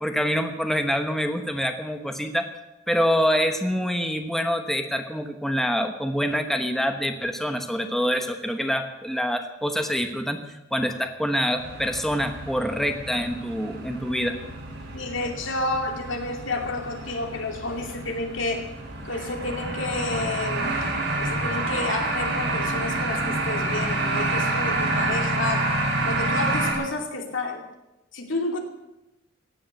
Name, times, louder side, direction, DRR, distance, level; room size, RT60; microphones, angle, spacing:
voice 1, 0.0-2.5 2.9-14.4, equal, ahead, 6 dB, 1.1 m, -26 dB
sound 1, 11.6-26.7, right 2 dB, 60° right, 5.8 m, -28 dB
voice 2, 14.9-18.7 19.0-20.7 21.1-25.7 26.0-27.6 28.1-28.6, left 2 dB, 80° left, 3 dB, 2.7 m, -30 dB
16.5 x 10.0 x 7.7 m, 0.98 s
head